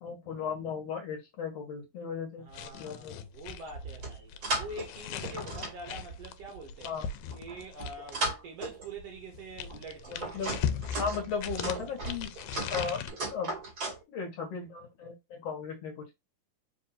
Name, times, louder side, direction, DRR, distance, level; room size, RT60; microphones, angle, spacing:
voice 1, 0.0-3.2 6.8-7.1 10.1-10.6 11.0-12.3 12.7-13.0 13.3-13.6 14.1-16.1, left 6 dB, 60° left, 1.9 m, -36 dB
voice 2, 2.4-7.0 7.3-10.3, right 2 dB, 65° right, 1.6 m, -45 dB
sound 1, 2.5-8.3 9.1-13.1, left 8 dB, 80° left, 2.0 m, -39 dB
sound 2, 3.7-4.9 5.2-6.6 7.3-9.0 9.7-14.0, right 2 dB, 40° right, 1.6 m, -36 dB
4.7 x 2.5 x 4.1 m
omnidirectional pair, 3.6 m